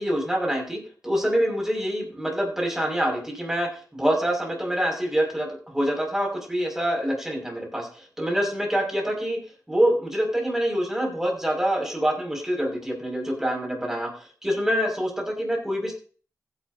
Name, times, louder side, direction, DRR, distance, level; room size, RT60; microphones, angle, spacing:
voice 1, 0.0-9.4 9.7-15.9, equal, 5° right, 0 dB, 6.1 m, -26 dB
15.5 x 11.0 x 2.8 m, 0.41 s
cardioid pair, 55°, 6 cm